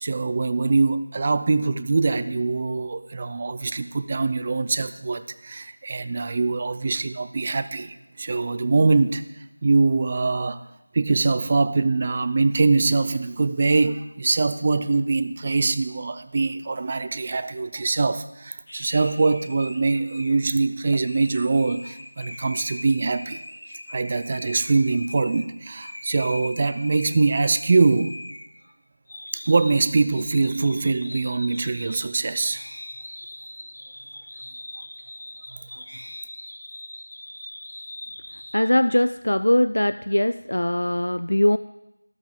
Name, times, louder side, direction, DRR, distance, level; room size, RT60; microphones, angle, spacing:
voice 1, 0.0-9.2 9.6-10.6 10.9-23.4 23.9-28.2 29.5-32.6, right 3 dB, 20° right, 12 dB, 0.3 m, -23 dB
sound 1, 18.7-25.5 25.8-28.7 29.1-38.5, left 1 dB, 40° left, 2.4 m, -41 dB
voice 2, 38.5-41.6, left 1 dB, 80° left, 13 dB, 0.3 m, -21 dB
12.5 x 12.5 x 3.6 m, 0.90 s
figure-of-eight pair, 175°, 0 cm